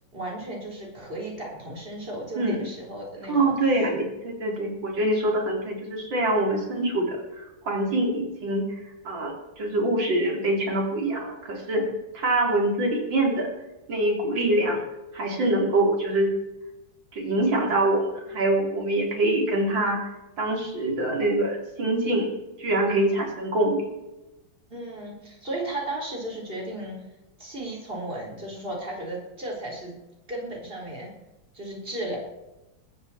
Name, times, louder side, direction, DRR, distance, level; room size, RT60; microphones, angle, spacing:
voice 1, 0.1-3.5 24.7-27.0 27.4-30.0 30.3-31.1 31.5-32.2, right 1 dB, 25° right, -1 dB, 4.2 m, -35 dB
voice 2, 2.3-2.7 3.3-8.8 9.0-11.9 12.1-13.5 13.9-14.8 15.1-16.3 17.1-20.0 20.4-22.3 22.6-23.9, right 1 dB, 65° right, 0 dB, 4.2 m, -24 dB
22.5 x 15.0 x 4.3 m, 1.0 s
omnidirectional pair, 2.2 m